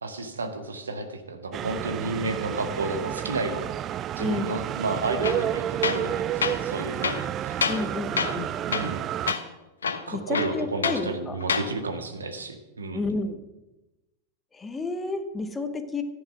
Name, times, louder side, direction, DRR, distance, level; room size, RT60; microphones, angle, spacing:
voice 1, 0.0-3.7 4.2-7.7 8.6-9.1 10.1-13.0, right 3 dB, 75° right, 7 dB, 1.8 m, -32 dB
sound 1, 1.5-9.3, right 11 dB, 30° right, 0.4 m, -30 dB
voice 2, 4.2-4.6 7.7-8.6 10.1-11.4 12.9-13.4 14.5-16.0, left 3 dB, 15° left, 9 dB, 1.4 m, -31 dB
Tools, 5.2-5.4 5.8-6.1 6.4-6.6 7.0-7.9 8.2-8.4 8.7-9.0 9.3-9.4 9.8-11.0 11.4-11.7, left 6 dB, 70° left, 1.1 m, -27 dB
13.5 x 10.5 x 6.1 m, 1.0 s
figure-of-eight pair, 90°, 0 cm